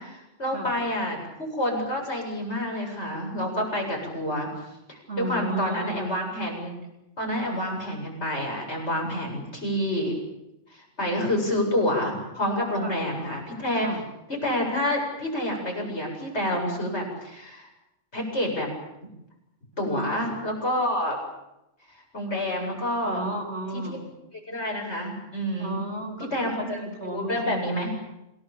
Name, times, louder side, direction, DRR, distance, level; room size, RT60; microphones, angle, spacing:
voice 1, 0.0-4.5 4.9-6.7 7.2-10.1 10.7-13.9 14.4-17.7 18.1-18.7 19.8-21.2 22.1-23.2 23.7-24.0 24.5-25.8 26.3-26.8 27.0-27.9, left 1 dB, 60° left, 0 dB, 8.5 m, -28 dB
voice 2, 5.1-6.1 12.8-13.0 13.7-14.0 19.8-20.3 23.0-24.0 25.6-27.7, right 1 dB, 55° right, 2 dB, 4.7 m, -33 dB
28.0 x 18.5 x 8.8 m, 0.88 s
omnidirectional pair, 1.3 m